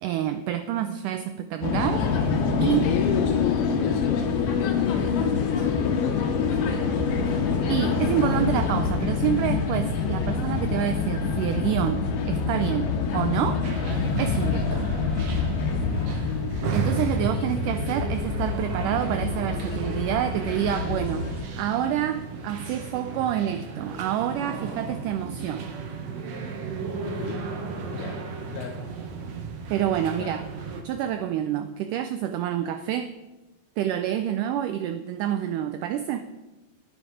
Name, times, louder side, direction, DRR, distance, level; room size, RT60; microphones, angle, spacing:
voice 1, 0.0-2.3 2.6-2.9 7.7-13.6 14.2-14.8 16.7-21.3 21.6-25.7 29.7-30.5 30.8-33.1 33.8-36.2, right 10 dB, 90° right, 10 dB, 1.8 m, -27 dB
sound 1, 1.6-21.5, left 5 dB, 70° left, 2.8 m, -26 dB
voice 2, 2.5-7.0 10.0-10.4 14.7-14.9 15.7-16.2 27.0-27.5 27.9-28.2 28.5-28.8 30.2-30.4, left 8 dB, 85° left, 3 dB, 2.6 m, -34 dB
sound 2, 13.6-30.8, right 4 dB, 65° right, 1.7 m, -33 dB
10.5 x 10.0 x 4.9 m, 1.1 s
omnidirectional pair, 4.3 m